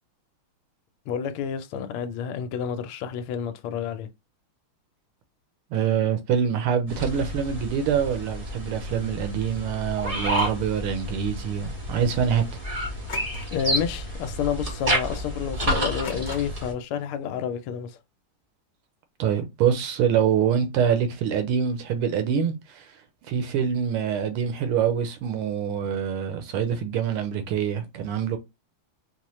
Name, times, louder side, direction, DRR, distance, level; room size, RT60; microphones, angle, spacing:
voice 1, 1.1-4.1 13.5-18.0, left 8 dB, 80° left, 1.4 m, -29 dB
voice 2, 5.7-12.4 19.2-22.9 23.3-28.4, right 8 dB, 80° right, 1.6 m, -25 dB
sound 1, 6.9-16.7, equal, 35° right, 0.5 m, -30 dB
sound 2, 10.2-10.7 13.1-13.7 14.0-14.4 14.7-14.8 16.0-16.8, left 4 dB, 55° left, 1.0 m, -41 dB
4.2 x 2.2 x 3.0 m
omnidirectional pair, 2.4 m